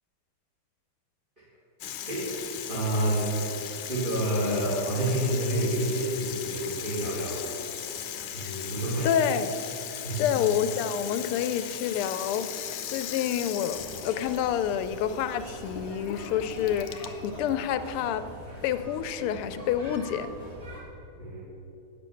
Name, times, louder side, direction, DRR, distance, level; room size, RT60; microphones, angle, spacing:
Water tap faucet / Sink (filling or washing), 1.8-19.3, left 9 dB, 70° left, 1.3 m, -38 dB
voice 1, 2.7-3.3 3.9-7.5 8.3-9.1 9.9-10.3 21.2-21.4, right 1 dB, 25° right, -10 dB, 2.4 m, -28 dB
voice 2, 9.0-9.6 10.2-18.2 18.6-20.3, left 9 dB, 90° left, 11 dB, 1.5 m, -28 dB
sound 1, 13.7-20.8, equal, 60° right, 3.4 m, -43 dB
9.6 x 6.9 x 7.0 m, 2.9 s
omnidirectional pair, 2.4 m